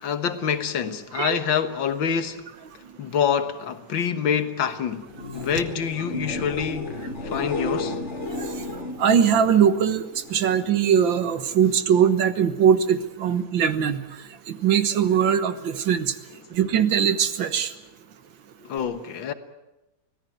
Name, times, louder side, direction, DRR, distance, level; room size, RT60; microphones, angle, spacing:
voice 1, 0.0-2.5 3.0-5.1 5.3-8.0 18.6-19.3, left 7 dB, 80° left, 2.1 m, -26 dB
sound 1, 5.0-10.8 11.1-11.7 18.8-18.9, left 2 dB, 35° left, 2.7 m, -34 dB
voice 2, 9.0-14.0 14.5-16.1 16.5-17.7, right 8 dB, 80° right, 2.1 m, -21 dB
24.5 x 17.0 x 9.3 m
omnidirectional pair, 2.0 m